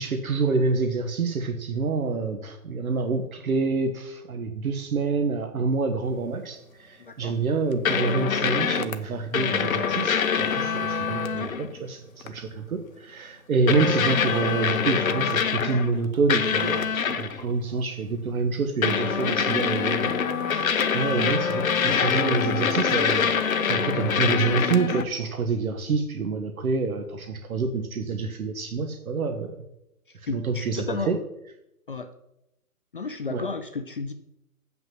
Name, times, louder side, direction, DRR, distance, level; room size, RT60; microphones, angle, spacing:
voice 1, 0.0-20.2 20.4-23.3 23.7-29.7 30.1-31.2 33.3-33.5, right 4 dB, 65° right, 5 dB, 1.4 m, -27 dB
voice 2, 7.0-7.3 11.4-11.5 30.3-31.1 31.9-32.1 32.9-34.1, left 4 dB, 35° left, 8 dB, 0.6 m, -33 dB
sound 1, 7.8-8.9 9.3-11.7 12.2-12.4 13.7-16.0 16.3-17.4 18.8-25.0, left 6 dB, 65° left, 1.1 m, -25 dB
7.6 x 5.9 x 7.5 m, 0.85 s
hypercardioid pair, 165°, 45 cm